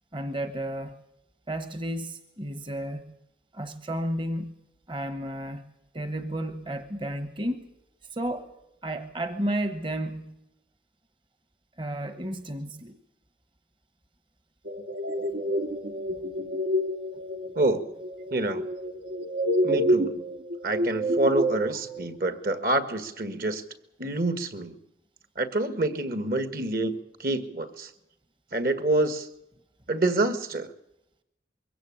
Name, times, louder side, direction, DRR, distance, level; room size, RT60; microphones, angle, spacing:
voice 1, 0.1-0.9 1.5-3.0 3.5-4.5 4.9-5.6 5.9-7.7 8.0-8.5 8.8-10.4 11.8-13.0 16.1-16.2, right 1 dB, 25° right, 9 dB, 1.1 m, -32 dB
sound 1, 14.6-22.1, equal, 80° right, 2.2 m, -28 dB
voice 2, 17.5-17.9 18.3-18.6 19.6-20.1 20.6-23.6 24.0-24.8 25.4-27.9 28.5-29.3 29.9-30.7, right 2 dB, 50° right, 11 dB, 1.6 m, -27 dB
23.0 x 17.0 x 8.7 m, 0.86 s
head